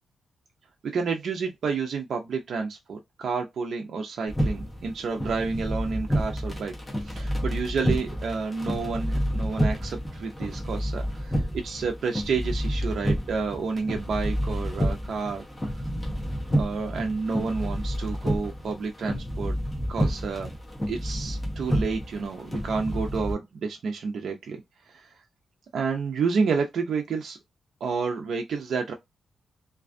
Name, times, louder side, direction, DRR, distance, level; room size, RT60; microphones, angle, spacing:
voice 1, 0.9-11.0 11.6-15.4 16.6-19.6 19.9-20.5 20.9-24.6 24.9-25.1 25.7-27.4 27.8-28.9, right 5 dB, 60° right, 0.4 m, -30 dB
sound 1, 4.3-23.3, equal, 10° left, 0.7 m, -29 dB
2.4 x 2.2 x 2.4 m
wide cardioid pair, 175°, 0 cm